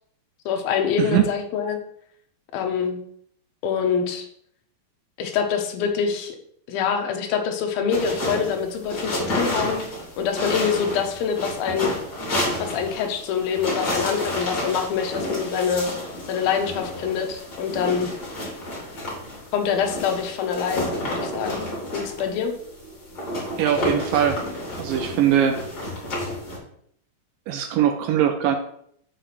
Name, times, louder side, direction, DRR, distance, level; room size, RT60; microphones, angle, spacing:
voice 1, 0.5-1.8 2.5-3.0 3.6-4.3 5.2-6.4 6.7-9.8 10.2-11.9 12.6-15.9 16.3-18.1 19.5-21.6 21.9-22.5, left 7 dB, 75° left, 4 dB, 2.7 m, -25 dB
voice 2, 1.0-1.3 23.6-24.4 24.8-25.6 27.5-28.6, right 10 dB, 80° right, 7 dB, 2.1 m, -21 dB
sound 1, 7.9-26.6, left 1 dB, 30° left, 3.0 m, -30 dB
6.9 x 5.0 x 5.9 m, 0.66 s
omnidirectional pair, 4.4 m